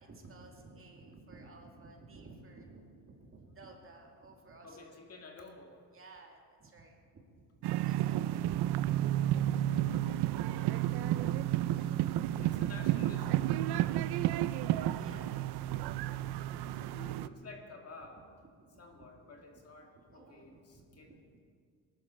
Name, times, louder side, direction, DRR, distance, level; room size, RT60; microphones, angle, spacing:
voice 1, 0.0-5.0 5.9-8.4 11.0-12.6 13.2-17.3 18.6-18.8 19.9-21.4, right 3 dB, 30° right, 1 dB, 2.2 m, -54 dB
voice 2, 4.6-5.8 8.1-8.8 9.4-10.9 12.4-13.8 16.7-18.2 18.8-21.2, left 3 dB, 35° left, 1 dB, 2.1 m, -52 dB
sound 1, 7.6-17.3, right 13 dB, 70° right, 0.6 m, -31 dB
20.0 x 12.0 x 4.3 m, 2.1 s
cardioid pair, 115°, 41 cm